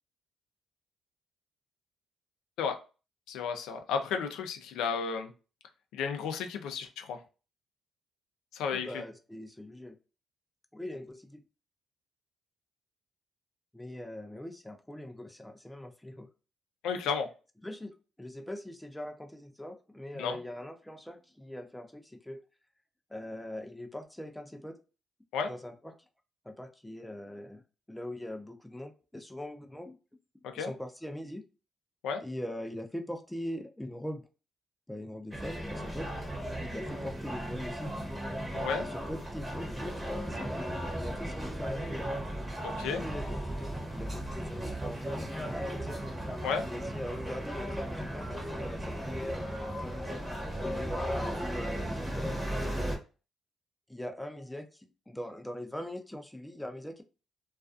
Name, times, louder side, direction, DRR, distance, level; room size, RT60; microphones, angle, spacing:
voice 1, 3.3-5.3 5.9-7.2 8.5-8.9 16.8-17.3 20.2-20.4 25.3-25.5 30.5-30.7 32.0-32.2 38.5-38.8 42.6-43.0 46.4-46.6, left 6 dB, 90° left, 5 dB, 0.4 m, -32 dB
voice 2, 8.7-10.0 10.7-11.4 13.7-16.3 17.6-22.4 23.1-24.8 25.5-26.0 26.4-27.6 27.9-29.9 30.6-31.4 32.2-34.2 34.9-36.1 36.6-37.9 38.7-42.1 42.7-46.0 46.6-50.3 50.6-53.0 53.9-57.0, left 1 dB, 5° left, 5 dB, 0.4 m, -42 dB
sound 1, 35.3-53.0, right 1 dB, 15° right, 0.8 m, -36 dB
2.3 x 2.3 x 2.4 m, 0.33 s
cardioid pair, 90°, 0 cm